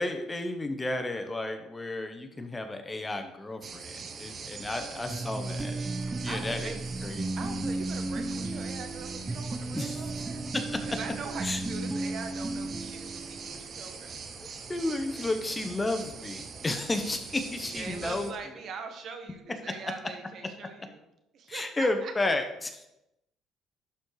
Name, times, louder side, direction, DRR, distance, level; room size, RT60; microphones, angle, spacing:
voice 1, 0.0-5.7 6.2-7.4 9.7-10.0 10.5-10.8 11.4-11.6 14.4-18.3 21.5-22.9, left 2 dB, 20° left, 6 dB, 1.0 m, -32 dB
sound 1, 3.6-18.3, right 5 dB, 45° right, 0.8 m, -42 dB
voice 2, 4.7-5.9 6.3-6.8 7.4-10.5 10.9-14.2 15.1-15.2 17.6-21.0 21.3-22.1, right 5 dB, 60° right, 5 dB, 1.5 m, -43 dB
sound 2, 5.1-13.8, right 2 dB, 15° right, 0.6 m, -35 dB
11.5 x 4.4 x 4.8 m, 0.87 s
cardioid pair, 105°, 0 cm